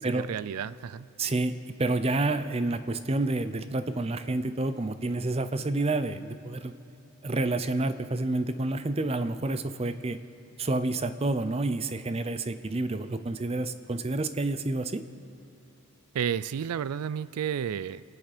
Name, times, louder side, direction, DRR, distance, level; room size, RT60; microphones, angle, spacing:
voice 1, 0.0-1.1 16.1-18.0, right 8 dB, 90° right, 17 dB, 0.4 m, -32 dB
voice 2, 1.2-1.5 1.8-6.7 7.2-10.2 10.6-15.0, right 2 dB, 25° right, 11 dB, 0.5 m, -29 dB
27.5 x 9.9 x 5.0 m, 2.7 s
head